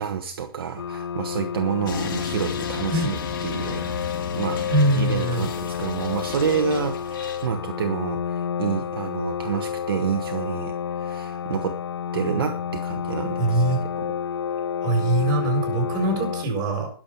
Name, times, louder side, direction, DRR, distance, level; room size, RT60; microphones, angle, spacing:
voice 1, 0.0-4.6 4.9-11.8 12.1-13.6 14.0-14.1, right 7 dB, 65° right, 6 dB, 1.3 m, -29 dB
sound 1, 0.8-16.5, left 8 dB, 85° left, 0.6 m, -30 dB
sound 2, 1.9-7.5, left 6 dB, 60° left, 4.8 m, -35 dB
voice 2, 4.7-5.5 13.4-13.8 14.8-16.9, right 1 dB, 30° right, 1 dB, 7.7 m, -22 dB
20.5 x 7.5 x 4.5 m, 0.44 s
hypercardioid pair, 125°, 13 cm